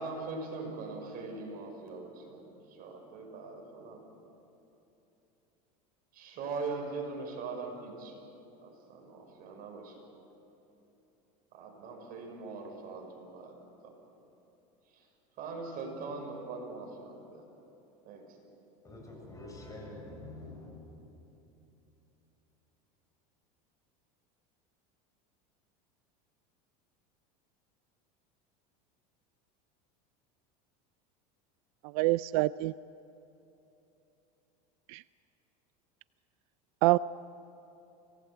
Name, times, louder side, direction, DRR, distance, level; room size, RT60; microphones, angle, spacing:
voice 1, 0.0-4.0 6.1-8.2 8.6-10.0 11.5-13.6 13.8-13.9 14.9-15.0 15.4-17.4 18.0-18.2, right 3 dB, 50° right, 5.8 m, -41 dB
voice 2, 18.8-20.9, left 2 dB, 15° left, 7.1 m, -46 dB
voice 3, 31.9-32.7 34.9-35.0 36.8-37.0, right 20 dB, 70° right, 0.4 m, -25 dB
25.5 x 18.5 x 7.9 m
supercardioid pair, 120°, 19 cm